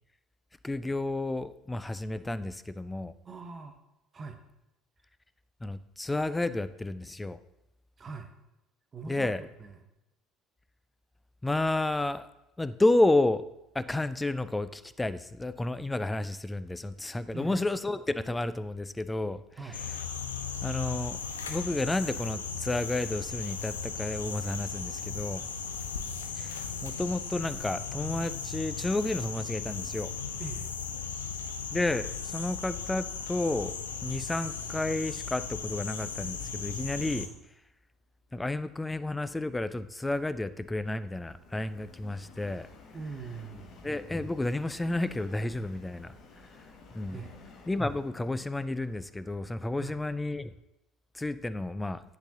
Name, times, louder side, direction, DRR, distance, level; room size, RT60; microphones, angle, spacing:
voice 1, 0.6-3.1 5.6-7.4 9.1-9.4 11.4-12.3 12.6-13.4 13.7-19.4 20.6-21.2 21.5-25.5 26.4-30.1 31.7-33.7 34.0-37.3 38.3-42.7 43.8-46.1 46.9-47.2 47.7-50.5 51.1-52.0, left 2 dB, 10° left, 14 dB, 0.3 m, -31 dB
voice 2, 3.2-3.8 4.1-4.4 8.0-8.3 8.9-9.9 17.3-17.7 19.6-19.8 30.4-30.7 42.9-43.8 47.1-47.3 49.8-50.0, right 4 dB, 30° right, 7 dB, 0.8 m, -42 dB
sound 1, 19.7-37.3, left 6 dB, 80° left, 0.5 m, -37 dB
Subway metro underground, 39.0-50.1, left 3 dB, 50° left, 1.0 m, -54 dB
10.0 x 3.9 x 2.8 m, 0.90 s
figure-of-eight pair, 60°, 0 cm